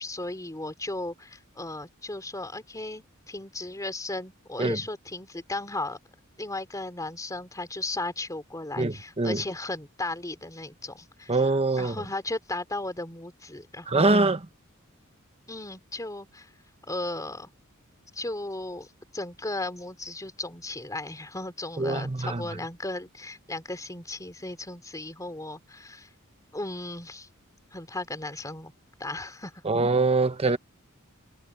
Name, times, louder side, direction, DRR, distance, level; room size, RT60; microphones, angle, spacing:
voice 1, 0.0-6.0 6.4-11.4 11.7-14.2 15.5-16.5 16.9-17.5 18.1-18.9 19.1-26.1 26.5-27.3 27.7-28.7 29.0-29.6, left 2 dB, 15° left, 2.9 m, -35 dB
voice 2, 8.8-9.4 11.3-12.0 13.9-14.4 21.8-22.4 29.6-30.6, right 3 dB, 30° right, 1.1 m, -23 dB
head